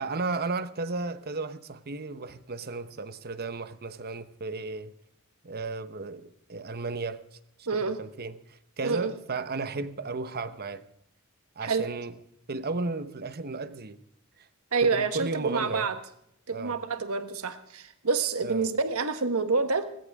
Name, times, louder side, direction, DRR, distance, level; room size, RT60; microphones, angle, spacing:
voice 1, 0.0-4.9 5.4-7.2 7.7-8.3 8.8-10.8 11.6-12.1 12.5-14.0 14.8-15.9 16.5-16.8 18.4-18.7, right 3 dB, 45° right, 1.0 m, -34 dB
voice 2, 7.7-8.0 8.8-9.1 11.6-11.9 14.7-15.9 16.5-19.8, right 4 dB, 80° right, 1.4 m, -27 dB
19.5 x 16.5 x 3.6 m
head